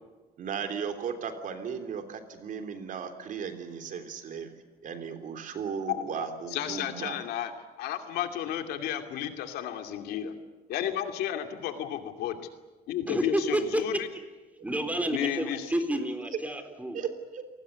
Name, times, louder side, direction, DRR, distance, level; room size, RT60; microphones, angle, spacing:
voice 1, 0.4-4.5 4.8-7.1 16.9-17.4, right 6 dB, 60° right, 7 dB, 3.3 m, -36 dB
voice 2, 5.9-6.2 6.5-7.5 7.8-10.3 10.7-12.4 12.9-14.0 15.1-15.6, left 10 dB, 90° left, 6 dB, 2.7 m, -32 dB
voice 3, 13.1-14.2 14.6-17.0, right 1 dB, 10° right, 7 dB, 3.9 m, -30 dB
28.5 x 20.0 x 8.4 m, 1.3 s
cardioid pair, 115°, 16 cm